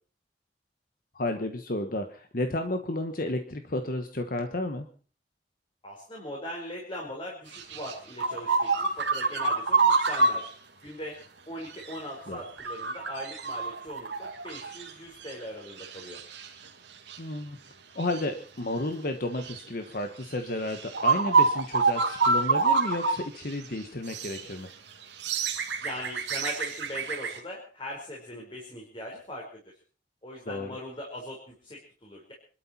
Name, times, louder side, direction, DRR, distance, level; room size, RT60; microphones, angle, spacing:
voice 1, 1.1-4.9 12.3-12.4 17.2-17.6 17.9-24.7 30.5-30.8, left 1 dB, 50° left, 6 dB, 1.3 m, -32 dB
voice 2, 5.8-10.5 10.8-11.2 11.5-16.2 25.8-29.6 30.2-32.3, left 1 dB, 30° left, -2 dB, 4.6 m, -40 dB
sound 1, 7.5-10.5 11.8-12.0 12.3-14.9 15.2-15.3 15.8-16.5 17.1-17.2 18.0-18.2 19.4-19.6 20.3-20.4 20.7-23.2 23.5-23.6 24.1-24.4 25.0-27.4, right 4 dB, 75° right, 2.8 m, -27 dB
26.0 x 12.5 x 4.4 m, 0.40 s
head